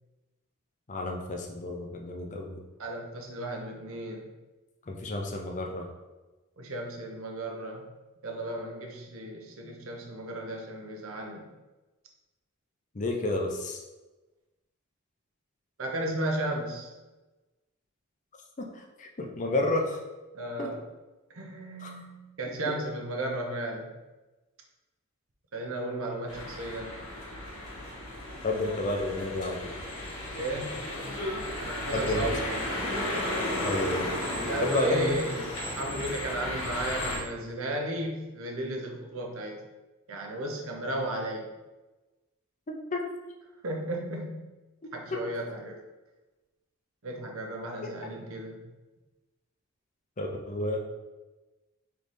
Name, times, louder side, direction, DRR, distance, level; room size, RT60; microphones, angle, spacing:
voice 1, 0.9-2.6 4.9-5.8 12.9-13.8 18.6-20.0 20.6-20.7 21.8-21.9 28.4-29.7 31.9-32.3 33.6-34.1 34.6-35.2 42.7-43.0 45.1-45.3 50.2-50.8, left 2 dB, 35° left, 1 dB, 0.5 m, -31 dB
voice 2, 2.8-4.3 6.6-7.8 8.2-11.5 15.8-16.9 20.3-20.8 21.3-23.9 25.5-27.0 30.3-30.8 31.6-32.5 34.4-39.6 40.1-41.5 43.6-44.4 44.9-45.8 47.0-48.6, right 1 dB, 75° right, 1 dB, 0.8 m, -34 dB
sound 1, 26.3-37.2, left 1 dB, 85° left, 1.2 m, -34 dB
3.4 x 3.2 x 4.0 m, 1.1 s
head